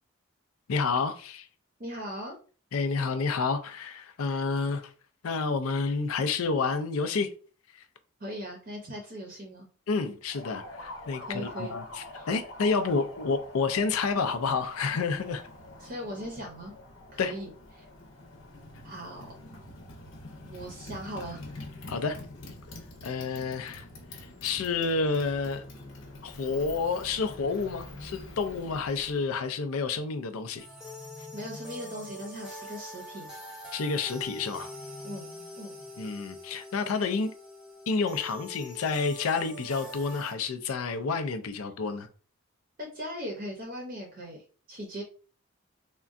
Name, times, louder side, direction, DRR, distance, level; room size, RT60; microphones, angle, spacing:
voice 1, 0.7-1.5 2.7-4.9 5.2-7.3 9.9-15.4 17.2-17.3 21.9-22.2 23.0-23.9 24.1-25.6 26.2-30.7 33.7-34.7 36.0-37.3 37.9-42.1, left 4 dB, 80° left, 0.4 m, -29 dB
voice 2, 1.8-2.4 8.2-9.7 11.3-11.7 12.1-12.3 15.8-16.7 17.1-17.5 17.7-17.9 18.8-19.3 20.5-21.4 31.3-33.3 35.0-35.3 35.6-35.7 42.8-45.0, equal, 40° right, 0.6 m, -39 dB
Motorcycle, 10.3-29.3, left 2 dB, 65° left, 0.8 m, -46 dB
sound 1, 26.9-28.7 30.5-32.4 34.2-36.1, left 1 dB, 20° left, 0.4 m, -50 dB
sound 2, 30.6-40.3, left 1 dB, ahead, 0.8 m, -44 dB
3.6 x 2.2 x 2.4 m
head